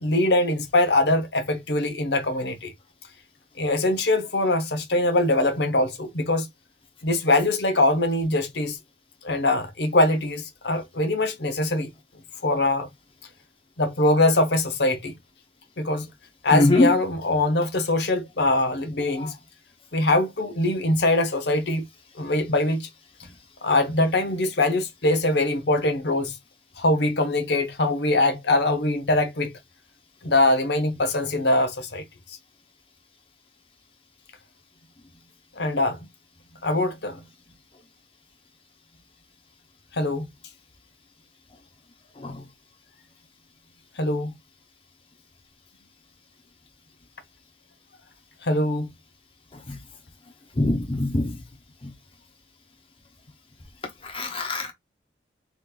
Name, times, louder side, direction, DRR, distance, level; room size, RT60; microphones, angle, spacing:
voice 1, 0.0-2.7 3.6-6.5 7.0-8.8 9.2-11.9 12.4-12.9 13.8-15.1 15.8-16.1 16.4-19.3 19.9-21.8 22.2-22.9 23.6-26.3 26.8-29.5 30.2-32.0 35.6-36.0 36.6-37.2 39.9-40.3 44.0-44.3 48.4-48.9, left 2 dB, 65° left, 0.8 m, -22 dB
voice 2, 16.5-16.9 19.2-19.3 42.2-42.4 49.7-49.8 50.6-51.3 54.0-54.7, left 2 dB, 30° left, 0.7 m, -23 dB
3.5 x 3.1 x 2.4 m
head